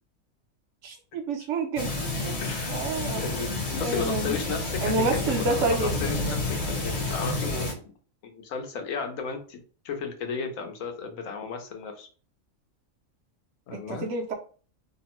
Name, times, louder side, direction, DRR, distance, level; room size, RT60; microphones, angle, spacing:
voice 1, 0.8-2.4 2.7-3.3 3.8-4.4 4.8-6.0 13.7-14.3, right 3 dB, 65° right, 3 dB, 0.9 m, -29 dB
sound 1, 1.8-7.7, left 2 dB, 55° left, 1.2 m, -30 dB
voice 2, 2.4-2.8 3.2-7.8 8.2-9.6 9.8-12.1 13.7-14.1, left 5 dB, 75° left, 5 dB, 1.0 m, -34 dB
2.9 x 2.0 x 2.9 m, 0.39 s
omnidirectional pair, 1.4 m